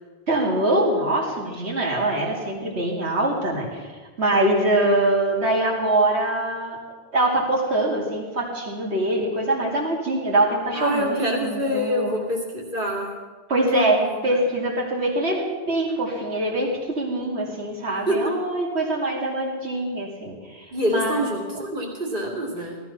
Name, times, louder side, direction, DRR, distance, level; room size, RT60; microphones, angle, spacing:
voice 1, 0.3-3.9 4.2-6.8 7.1-12.1 13.5-21.3 21.5-21.6, right 1 dB, 90° right, -3 dB, 2.8 m, -23 dB
voice 2, 10.7-13.2 13.7-14.4 18.1-18.4 20.7-22.8, equal, 55° right, -1 dB, 2.8 m, -26 dB
17.0 x 13.0 x 5.8 m, 1.4 s
omnidirectional pair, 1.1 m